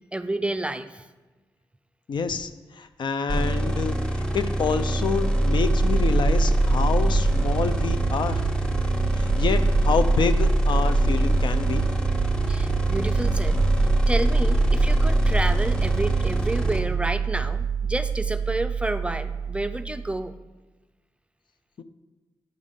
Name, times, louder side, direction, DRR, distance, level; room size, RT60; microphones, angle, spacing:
voice 1, 0.1-1.0 12.5-13.6 14.1-20.3, right 2 dB, 15° right, 9 dB, 0.4 m, -30 dB
voice 2, 2.1-2.5 2.8-8.4 9.2-11.9 21.8-21.9, left 5 dB, 70° left, 10 dB, 0.5 m, -27 dB
sound 1, 3.3-16.8, right 1 dB, 10° left, 1.3 m, -23 dB
sound 2, 5.5-20.3, right 7 dB, 80° right, 0.4 m, -28 dB
9.2 x 3.7 x 6.6 m, 1.2 s
cardioid pair, 65°, 8 cm